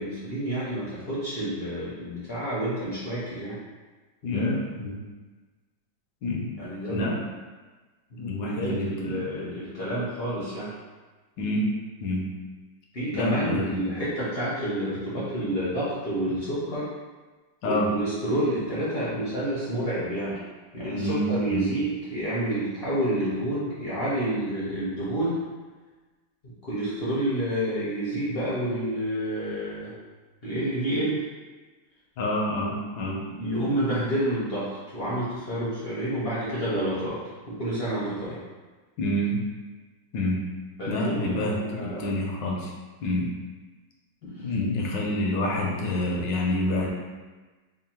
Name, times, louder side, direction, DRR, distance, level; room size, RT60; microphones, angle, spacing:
voice 1, 0.0-3.6 4.2-4.7 6.6-7.3 8.1-10.7 12.9-16.9 17.6-20.4 20.7-25.4 26.4-29.9 30.4-31.2 33.3-37.2 37.5-38.4 40.8-42.1 44.4-44.5, right 1 dB, 50° left, -9 dB, 0.7 m, -29 dB
voice 2, 4.2-5.0 6.2-6.5 6.9-7.2 8.2-9.2 11.4-11.7 12.0-12.3 13.1-13.9 17.6-17.9 20.9-21.7 32.2-33.2 39.0-39.4 40.1-40.4 40.9-42.7 43.0-43.3 44.2-46.9, left 1 dB, 75° left, -1 dB, 1.3 m, -27 dB
3.6 x 2.2 x 4.3 m, 1.3 s
omnidirectional pair, 2.1 m